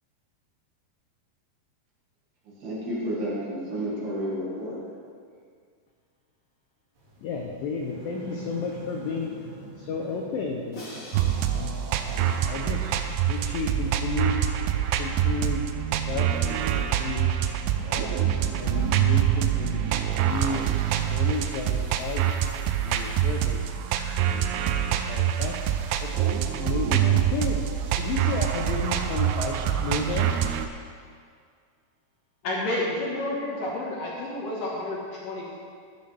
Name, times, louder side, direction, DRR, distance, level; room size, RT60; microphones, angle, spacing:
voice 1, 2.6-4.8, equal, 65° right, -7 dB, 4.3 m, -31 dB
sound 1, 7.0-23.3, right 2 dB, 50° right, 3.1 m, -46 dB
voice 2, 7.2-9.3 9.8-10.9 11.5-11.7 12.1-12.9 13.3-14.4 15.0-15.7 16.1-17.3 17.8-18.2 18.6-19.8 20.2-20.7 21.1-22.3 22.8-23.7 24.2-24.5 25.1-25.7 26.0-26.2 26.6-27.6 28.0-30.4, left 4 dB, 80° left, 0 dB, 2.0 m, -32 dB
Crash cymbal, 10.7-12.9, equal, 35° left, 2.2 m, -45 dB
sound 2, 11.1-30.7, right 10 dB, 80° right, 2.5 m, -25 dB
voice 3, 32.4-35.6, left 1 dB, 60° left, -5 dB, 2.6 m, -30 dB
13.5 x 9.2 x 3.4 m, 2.1 s
omnidirectional pair, 5.0 m